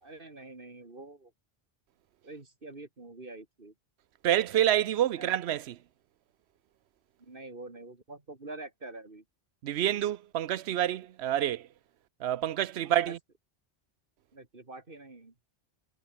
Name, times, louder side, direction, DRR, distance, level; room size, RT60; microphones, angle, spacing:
voice 1, 0.0-1.3 2.2-3.7 5.2-5.3 7.2-9.2 12.8-13.1 14.3-15.3, right 2 dB, 55° right, 2.8 m, -46 dB
voice 2, 4.2-5.8 9.6-11.7 12.2-13.2, right 11 dB, 90° right, 0.9 m, -28 dB
omnidirectional pair, 1.1 m